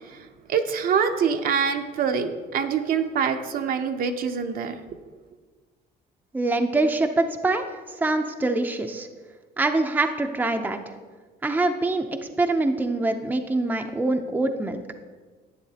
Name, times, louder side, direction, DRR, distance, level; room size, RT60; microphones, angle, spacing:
voice 1, 0.5-4.8, right 6 dB, 60° right, 6 dB, 0.7 m, -25 dB
voice 2, 6.3-7.6 8.0-9.1 9.6-10.8 11.4-12.1 12.4-14.8, right 2 dB, 10° right, 5 dB, 0.5 m, -24 dB
10.5 x 8.5 x 2.8 m, 1.4 s
cardioid pair, 110°, 17 cm